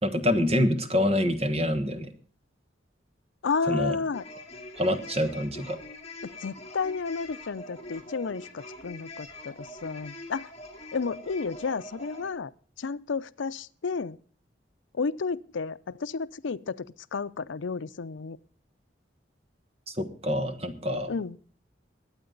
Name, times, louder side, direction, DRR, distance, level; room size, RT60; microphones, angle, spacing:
voice 1, 0.0-2.1 3.7-4.0 4.8-5.8 20.0-21.1, left 1 dB, 30° right, 8 dB, 1.4 m, -26 dB
voice 2, 3.4-4.2 6.2-10.5 10.9-12.5 12.8-14.2 14.9-18.4 21.1-21.4, left 4 dB, 85° left, 15 dB, 0.5 m, -32 dB
sound 1, 4.1-12.3, left 2 dB, 35° left, 2.3 m, -44 dB
21.5 x 8.7 x 3.9 m, 0.44 s
head